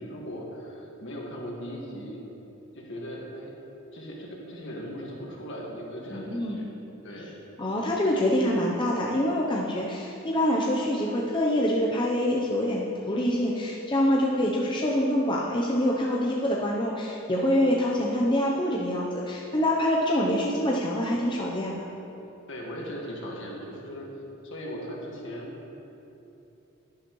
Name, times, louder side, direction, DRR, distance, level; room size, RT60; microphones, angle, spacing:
voice 1, 0.0-2.2 2.7-3.5 3.9-6.7 7.0-7.3 22.5-24.1 24.4-25.5, equal, 60° left, -2 dB, 1.8 m, -38 dB
voice 2, 6.1-6.6 7.6-21.9, left 1 dB, 20° left, -3 dB, 0.7 m, -25 dB
11.0 x 10.5 x 3.1 m, 3.0 s
head